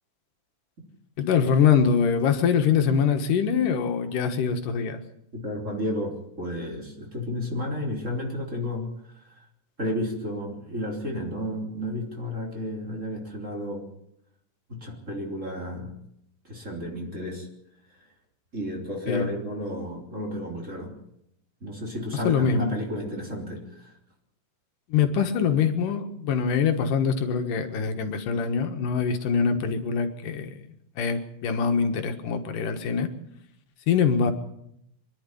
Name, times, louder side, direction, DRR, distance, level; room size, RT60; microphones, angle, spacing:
voice 1, 1.2-5.0 19.1-19.3 22.2-22.8 24.9-30.6 31.0-33.1 33.9-34.3, left 6 dB, 80° left, 6 dB, 3.1 m, -23 dB
voice 2, 5.3-9.5 9.8-13.9 14.7-16.0 16.4-17.5 18.5-20.9 21.6-23.9, left 1 dB, 20° right, 0 dB, 3.8 m, -32 dB
24.5 x 11.5 x 9.9 m, 0.78 s
omnidirectional pair, 3.8 m